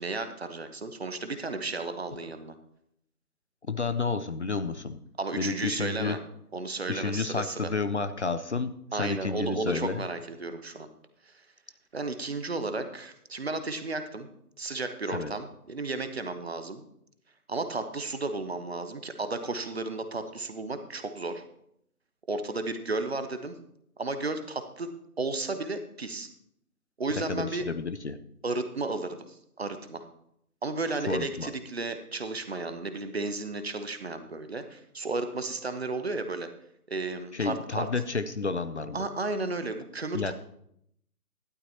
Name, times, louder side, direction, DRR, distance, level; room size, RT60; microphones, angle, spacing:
voice 1, 0.0-2.5 5.2-6.2 6.5-7.7 8.9-10.9 11.3-11.4 11.9-14.3 14.6-16.8 17.5-21.4 22.3-23.5 24.0-24.9 25.2-26.3 27.0-27.6 28.4-30.0 30.6-36.5 36.9-37.9 38.9-40.3, right 3 dB, 40° right, 9 dB, 0.9 m, -33 dB
voice 2, 3.7-5.0 5.4-6.2 6.9-10.1 15.1-15.3 27.1-28.2 31.1-31.5 37.3-39.0 40.1-40.3, left 4 dB, 45° left, 11 dB, 0.6 m, -31 dB
12.0 x 12.0 x 2.8 m, 0.74 s
figure-of-eight pair, 150°, 47 cm